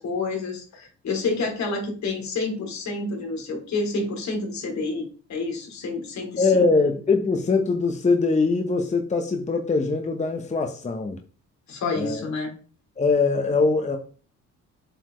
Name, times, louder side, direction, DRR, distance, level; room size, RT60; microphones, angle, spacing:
voice 1, 0.0-6.6 11.7-12.5, left 3 dB, 65° left, 3.0 m, -29 dB
voice 2, 6.4-11.2 12.0-12.2 13.0-14.0, left 3 dB, 25° left, 0.9 m, -22 dB
7.7 x 4.5 x 3.1 m
cardioid pair, 90°, 30 cm